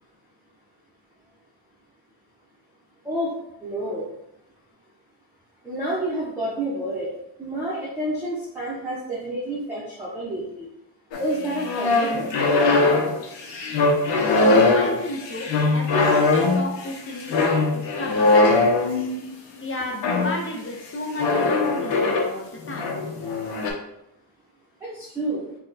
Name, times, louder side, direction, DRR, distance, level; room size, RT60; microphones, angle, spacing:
voice 1, 3.6-4.1 5.6-7.1 7.4-10.7 11.2-12.6 24.8-25.4, right 1 dB, 5° right, -8 dB, 0.7 m, -29 dB
sound 1, 11.1-19.3 20.0-20.4 21.2-22.3 22.6-23.7, left 3 dB, 80° left, 0.9 m, -21 dB
voice 2, 14.4-17.3 17.7-19.1 19.6-22.9, left 1 dB, 30° left, -1 dB, 0.4 m, -33 dB
4.1 x 2.2 x 4.0 m, 0.80 s
wide cardioid pair, 180°, 43 cm